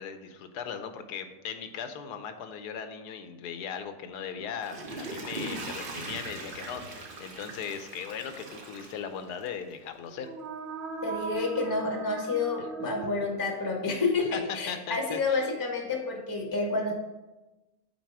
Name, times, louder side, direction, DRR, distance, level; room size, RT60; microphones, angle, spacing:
voice 1, 0.0-10.3 12.6-12.7 13.9-14.0 14.3-15.5, left 7 dB, 85° left, 8 dB, 1.2 m, -38 dB
Water / Toilet flush, 4.4-9.7 10.1-10.2, right 2 dB, 40° right, 0.9 m, -40 dB
sound 1, 10.1-13.9, right 4 dB, 85° right, 0.4 m, -39 dB
voice 2, 11.0-16.9, left 3 dB, 15° left, 2 dB, 0.8 m, -29 dB
8.2 x 4.0 x 4.7 m, 1.1 s
omnidirectional pair, 1.7 m